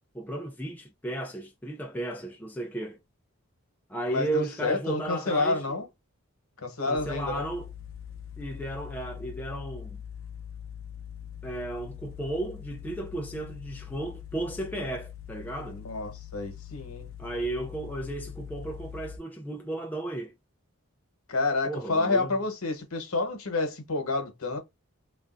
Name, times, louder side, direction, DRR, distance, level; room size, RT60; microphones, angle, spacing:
voice 1, 0.1-3.0 3.9-5.8 6.9-7.7 8.4-10.0 11.4-15.8 17.2-20.3 21.6-22.3, right 1 dB, 5° left, 0.3 m, -34 dB
voice 2, 4.1-5.9 6.6-7.4 15.7-17.1 21.3-24.6, left 3 dB, 75° left, 1.1 m, -29 dB
sound 1, 7.0-19.2, left 9 dB, 60° left, 0.6 m, -43 dB
3.3 x 2.4 x 2.5 m
head